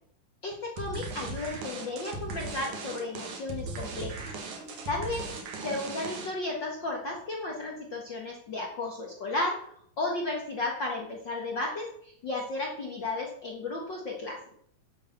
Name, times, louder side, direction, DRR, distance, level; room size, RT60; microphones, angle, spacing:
voice 1, 0.4-4.3 4.9-5.2 5.6-9.7 10.0-14.4, left 2 dB, 55° left, -1 dB, 1.2 m, -34 dB
sound 1, 0.8-6.5, right 3 dB, 55° right, 2.9 m, -38 dB
8.5 x 7.8 x 7.3 m, 0.67 s
omnidirectional pair, 4.4 m